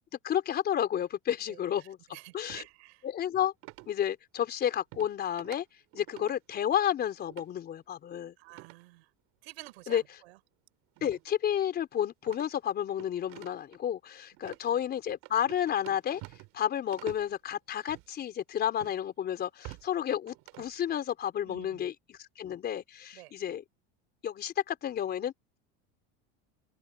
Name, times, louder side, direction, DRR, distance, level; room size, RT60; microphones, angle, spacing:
voice 1, 0.2-2.0 2.3-2.6 3.0-3.5 3.9-5.6 5.9-8.3 9.9-10.0 11.0-16.2 16.5-23.6 24.2-25.6, left 10 dB, 30° left, 4.2 m, -31 dB
voice 2, 1.5-3.1 8.4-9.1 9.4-10.4 14.4-14.5 21.4-21.9 23.1-23.3, right 21 dB, 90° right, 7.1 m, -50 dB
sound 1, 2.5-2.7 3.6-3.9 4.9-5.1 5.4-5.6 5.9-6.3 7.3-7.5 8.5-8.8 9.6-9.7 11.0-11.2 11.5-11.6 12.2-13.8 14.4-14.6 15.2-16.6 16.9-17.3 17.8-18.1 18.8-19.0 19.4-19.9 20.3-20.7, right 22 dB, 60° right, 3.5 m, -48 dB
open air
cardioid pair, 150°, 31 cm